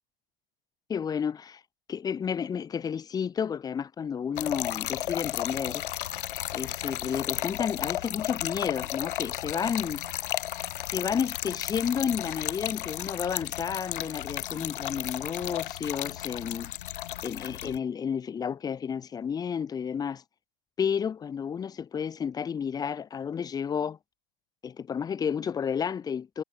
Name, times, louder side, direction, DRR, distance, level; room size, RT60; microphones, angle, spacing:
voice 1, 0.9-1.6 1.9-5.8 6.5-10.0 10.9-16.7 17.2-20.2 20.8-24.0 24.6-26.4, left 7 dB, 10° left, 1.8 m, -31 dB
Trickle dribble / Fill (with liquid), 4.4-17.8, left 13 dB, 60° left, 1.1 m, -34 dB
hypercardioid pair, 145°, 30 cm